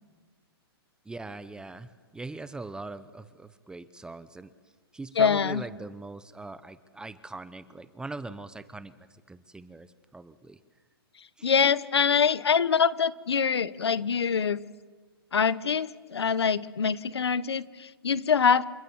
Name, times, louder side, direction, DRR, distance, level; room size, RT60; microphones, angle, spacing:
voice 1, 1.0-4.5 4.9-10.6 11.4-11.5, right 3 dB, 5° right, 14 dB, 0.8 m, -41 dB
voice 2, 5.2-5.6 11.4-14.6 15.3-18.6, left 6 dB, 85° left, 17 dB, 1.1 m, -24 dB
28.5 x 26.0 x 7.3 m, 1.5 s
hypercardioid pair, 135°, 13 cm